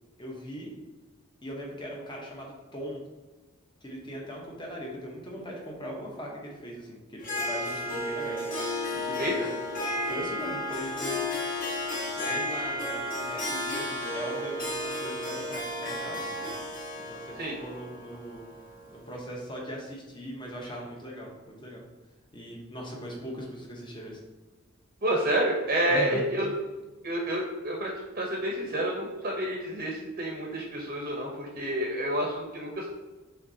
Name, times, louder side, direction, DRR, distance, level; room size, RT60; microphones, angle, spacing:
voice 1, 0.2-0.7 1.4-3.0 3.8-9.5 9.9-11.3 12.1-16.5 17.1-18.5 18.9-21.8 22.3-24.2 25.9-26.2, equal, 25° left, -1 dB, 0.9 m, -40 dB
Harp, 7.2-19.0, left 1 dB, 40° left, 1.5 m, -33 dB
voice 2, 25.0-26.5 27.0-27.9 28.2-32.9, right 1 dB, 40° right, -1 dB, 0.7 m, -29 dB
5.6 x 3.2 x 2.7 m, 1.2 s
head